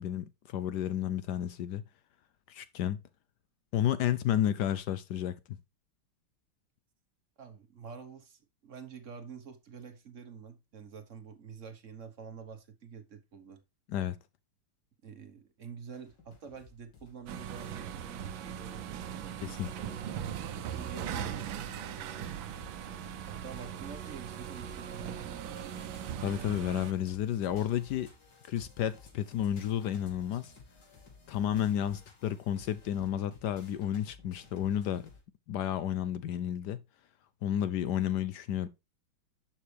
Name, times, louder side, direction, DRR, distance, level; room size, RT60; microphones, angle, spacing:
voice 1, 0.0-1.8 2.5-3.0 3.7-5.4 13.9-14.2 19.4-19.7 26.2-28.1 28.5-30.5 31.3-35.1 35.5-36.8 37.4-38.7, left 10 dB, 80° left, 0.9 m, -31 dB
voice 2, 7.4-13.6 15.0-19.4 19.6-19.9 20.2-22.3 23.3-25.8, right 6 dB, 40° right, 1.2 m, -48 dB
sound 1, 15.9-35.2, left 4 dB, 50° left, 3.3 m, -57 dB
sound 2, 17.3-26.9, right 9 dB, 70° right, 1.4 m, -39 dB
11.0 x 6.2 x 3.3 m
omnidirectional pair, 2.4 m